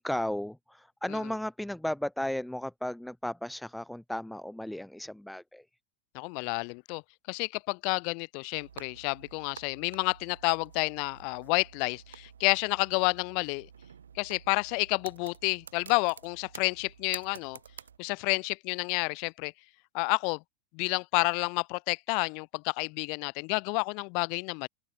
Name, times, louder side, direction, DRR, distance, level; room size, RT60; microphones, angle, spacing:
voice 1, 0.0-5.6, left 1 dB, ahead, 4.1 m, -35 dB
voice 2, 6.1-7.0 7.3-13.7 14.2-17.6 18.0-19.5 19.9-20.4 20.7-24.7, left 36 dB, 45° left, 1.6 m, -30 dB
sound 1, 8.5-18.0, right 7 dB, 70° right, 4.8 m, -50 dB
figure-of-eight pair, 90°, 0 cm